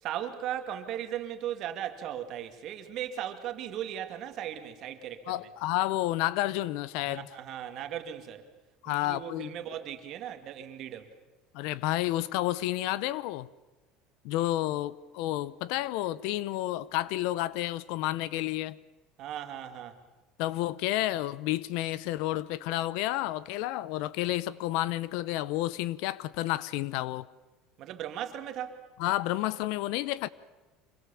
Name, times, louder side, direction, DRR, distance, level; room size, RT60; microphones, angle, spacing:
voice 1, 0.0-5.4 7.1-8.5 8.9-11.1 19.2-20.0 27.8-28.8, right 10 dB, 40° right, 2.3 m, -37 dB
voice 2, 5.3-7.3 8.8-9.5 11.5-13.5 14.2-18.8 20.4-27.3 29.0-30.3, left 16 dB, 65° left, 0.8 m, -30 dB
26.5 x 22.5 x 7.1 m
cardioid pair, 160°, 0 cm